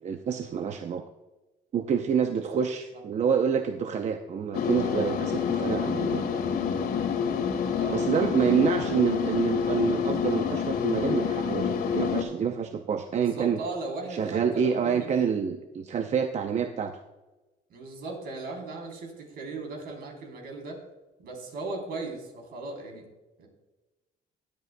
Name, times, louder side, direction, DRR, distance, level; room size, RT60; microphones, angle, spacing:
voice 1, 0.0-1.0 1.7-6.2 7.9-13.6 14.1-17.0, right 7 dB, 45° right, 6 dB, 0.6 m, -27 dB
sound 1, 4.5-12.2, left 7 dB, 65° left, 1.9 m, -27 dB
voice 2, 7.8-8.1 13.1-15.1 17.7-20.8 21.2-23.1 23.4-23.5, right 3 dB, 65° right, 2 dB, 3.6 m, -37 dB
21.5 x 8.2 x 2.2 m, 1.1 s
cardioid pair, 110°, 17 cm